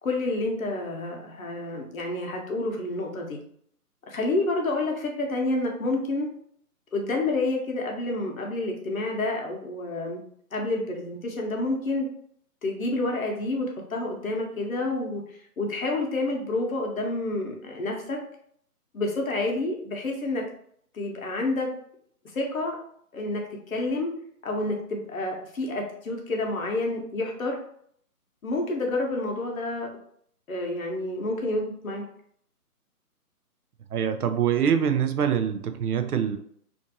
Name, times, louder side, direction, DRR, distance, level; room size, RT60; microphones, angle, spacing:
voice 1, 0.0-3.4 4.1-6.3 6.9-10.2 10.5-12.1 12.6-15.2 15.6-18.2 18.9-20.4 20.9-21.7 22.3-22.8 23.1-24.1 24.4-27.6 28.4-29.9 30.5-32.0, left 2 dB, 60° left, 1 dB, 0.9 m, -29 dB
voice 2, 33.9-36.4, right 8 dB, 75° right, 8 dB, 0.5 m, -24 dB
2.6 x 2.5 x 2.7 m, 0.65 s
hypercardioid pair, 175°, 46 cm